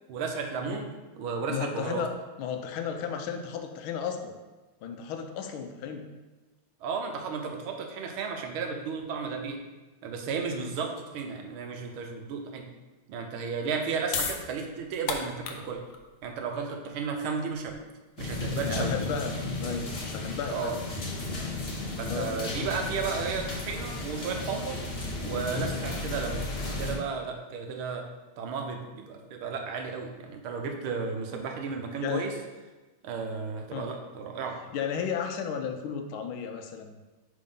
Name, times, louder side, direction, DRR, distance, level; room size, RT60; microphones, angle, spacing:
voice 1, 0.1-0.9 1.2-2.0 6.8-9.6 10.0-12.7 13.1-15.8 16.2-17.7 18.2-18.9 19.6-19.8 20.5-20.8 22.0-24.8 25.2-26.5 26.8-28.1 28.4-32.3 33.0-34.6, right 5 dB, 90° right, 3 dB, 1.7 m, -33 dB
voice 2, 1.5-4.3 4.8-6.1 10.5-10.7 18.7-20.8 22.1-22.7 32.0-32.3 33.7-33.9 34.7-37.0, left 7 dB, 85° left, 6 dB, 1.5 m, -34 dB
sound 1, 13.9-20.4, left 6 dB, 65° left, 1.0 m, -38 dB
sound 2, 18.2-26.9, left 2 dB, 35° left, 1.2 m, -34 dB
5.2 x 4.3 x 5.4 m, 1.2 s
omnidirectional pair, 2.2 m